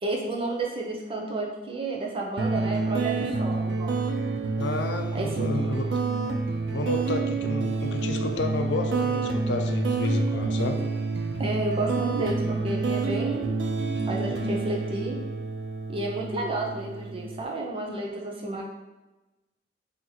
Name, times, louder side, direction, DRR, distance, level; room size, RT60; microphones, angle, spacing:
voice 1, 0.0-4.0 5.1-5.5 10.3-10.4 11.4-13.4 13.8-15.2 15.9-18.6, right 2 dB, 30° right, -1 dB, 0.6 m, -31 dB
sound 1, 2.4-17.4, right 4 dB, 75° right, 0.4 m, -28 dB
voice 2, 4.6-5.8 6.7-10.8, left 3 dB, 80° left, 5 dB, 0.4 m, -31 dB
2.9 x 2.9 x 3.9 m, 1.1 s
head